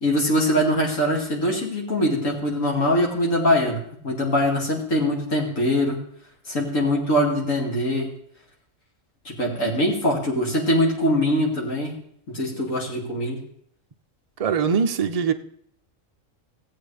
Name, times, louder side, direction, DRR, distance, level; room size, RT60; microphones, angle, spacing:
voice 1, 0.0-6.0 6.5-8.1 9.2-12.0 12.3-13.4, equal, 80° left, 3.0 m, -22 dB
voice 2, 14.4-15.3, right 6 dB, 45° right, 0.5 m, -22 dB
17.0 x 7.9 x 3.4 m
omnidirectional pair, 1.3 m